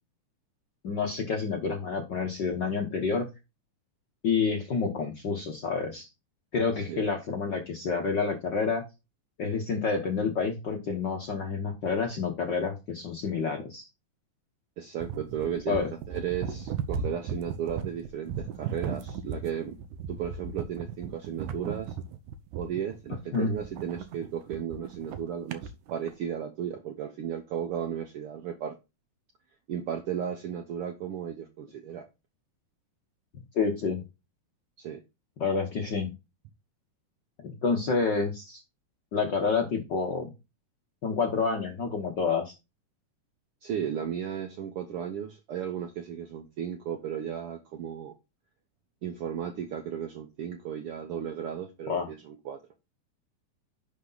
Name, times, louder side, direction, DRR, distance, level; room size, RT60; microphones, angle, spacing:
voice 1, 0.8-3.3 4.2-6.1 6.5-8.8 9.4-13.8 15.7-15.9 23.3-23.5 33.5-34.0 35.4-36.1 37.4-38.6 39.1-40.3 41.0-42.5 51.9-52.1, left 5 dB, 60° left, 1.2 m, -28 dB
voice 2, 14.8-19.8 20.1-21.9 22.6-28.8 29.7-32.1 34.8-35.0 43.6-48.1 49.0-52.6, right 9 dB, 75° right, 1.3 m, -35 dB
sound 1, 15.0-26.1, right 6 dB, 90° right, 2.4 m, -36 dB
10.5 x 5.1 x 4.0 m
omnidirectional pair, 3.5 m